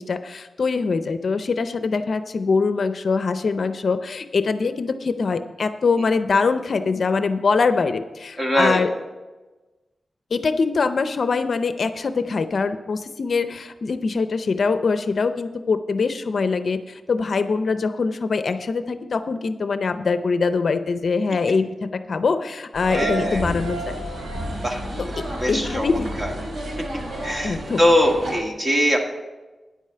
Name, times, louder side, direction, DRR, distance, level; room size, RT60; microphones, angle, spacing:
voice 1, 0.0-8.9 10.3-24.0 25.0-26.1 27.4-27.9, left 4 dB, 60° left, 10 dB, 0.5 m, -23 dB
voice 2, 8.4-8.8 22.9-23.4 24.6-24.8 25.4-25.9 26.2-26.3 27.2-29.0, equal, 25° right, 2 dB, 1.7 m, -21 dB
sound 1, 22.7-28.4, right 1 dB, 85° right, 3.2 m, -31 dB
10.0 x 8.3 x 5.6 m, 1.2 s
wide cardioid pair, 120°, 0 cm